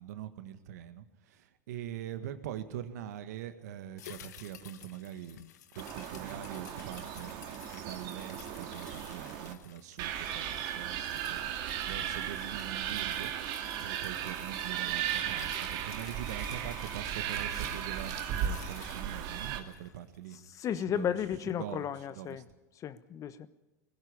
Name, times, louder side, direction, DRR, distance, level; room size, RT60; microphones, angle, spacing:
voice 1, 0.0-5.4 5.7-13.3 13.8-20.4 20.8-21.2 21.4-21.9 22.1-22.4, right 11 dB, 70° right, 1.8 m, -43 dB
sound 1, 4.0-20.5 20.8-20.9, left 11 dB, 75° left, 1.3 m, -52 dB
sound 2, 5.8-9.5 10.0-19.6, right 10 dB, 50° right, 2.4 m, -36 dB
sound 3, 13.6-18.6, right 6 dB, 15° right, 1.5 m, -52 dB
voice 2, 20.5-22.4 22.8-23.5, left 9 dB, 35° left, 1.2 m, -34 dB
20.0 x 16.0 x 9.7 m
hypercardioid pair, 95°, 9 cm